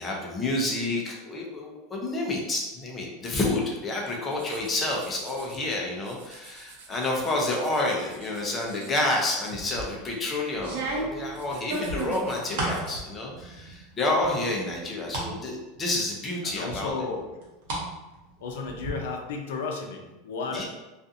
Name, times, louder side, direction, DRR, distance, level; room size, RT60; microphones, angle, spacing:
voice 1, 0.0-16.9 20.5-20.6, left 2 dB, 15° left, -1 dB, 0.4 m, -29 dB
sound 1, 4.3-5.7 6.0-10.0 10.4-14.5, right 4 dB, 80° right, 0.5 m, -49 dB
sound 2, 9.5-9.9 10.6-12.8 13.3-13.9 14.2-15.3 15.8-15.9 16.7-17.9 18.2-18.9, right 2 dB, 60° right, 0.8 m, -33 dB
voice 2, 16.4-17.3 18.4-20.6, left 4 dB, 80° left, 2 dB, 0.5 m, -33 dB
2.4 x 2.3 x 2.6 m, 1.1 s
supercardioid pair, 175°, 0 cm